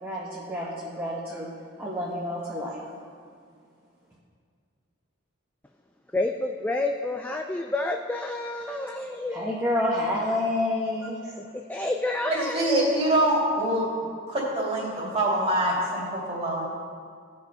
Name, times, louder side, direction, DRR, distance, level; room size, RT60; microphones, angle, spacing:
voice 1, 0.0-1.5 1.8-2.8 9.3-11.4, left 1 dB, 10° right, -6 dB, 1.1 m, -29 dB
voice 2, 6.1-9.5 11.5-13.0, left 2 dB, 10° left, 3 dB, 0.3 m, -29 dB
voice 3, 12.3-13.8 14.3-16.6, right 1 dB, 30° right, -5 dB, 2.7 m, -25 dB
16.0 x 5.3 x 5.6 m, 2.1 s
head